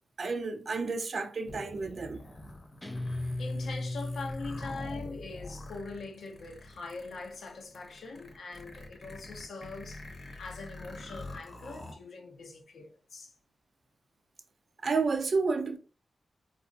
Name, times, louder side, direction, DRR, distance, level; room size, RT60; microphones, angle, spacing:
voice 1, 0.2-2.2 14.8-15.8, right 4 dB, 55° right, 0.5 m, -30 dB
sound 1, 1.5-11.9, left 2 dB, 40° left, 0.9 m, -46 dB
Guitar, 2.8-5.4, left 1 dB, 10° left, 0.4 m, -36 dB
voice 2, 2.9-13.3, left 3 dB, 85° left, 0.7 m, -43 dB
4.1 x 2.5 x 2.6 m
wide cardioid pair, 105°, 0 cm